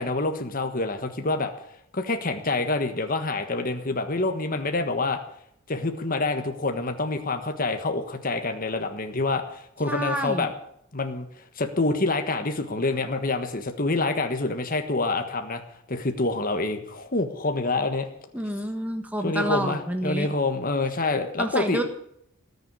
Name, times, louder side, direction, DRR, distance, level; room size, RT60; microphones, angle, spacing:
voice 1, 0.0-1.5 1.9-5.2 5.7-10.5 10.9-11.3 11.5-15.6 15.9-18.1 19.2-21.8, left 2 dB, 40° left, 6 dB, 1.4 m, -27 dB
voice 2, 9.9-10.5 18.3-20.3 21.4-21.8, right 1 dB, 5° right, 4 dB, 1.4 m, -28 dB
19.0 x 7.0 x 9.7 m, 0.72 s
head